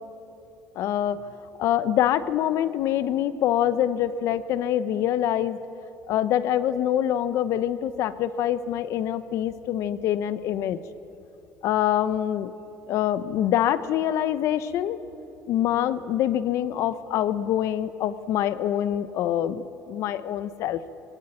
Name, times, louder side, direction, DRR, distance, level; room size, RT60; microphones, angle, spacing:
voice 1, 0.7-1.2 1.6-5.6 6.1-10.8 11.6-12.5 12.9-15.0 15.5-20.8, left 11 dB, 65° left, 14 dB, 1.1 m, -25 dB
21.5 x 18.5 x 10.0 m, 2.9 s
cardioid pair, 105°, 5 cm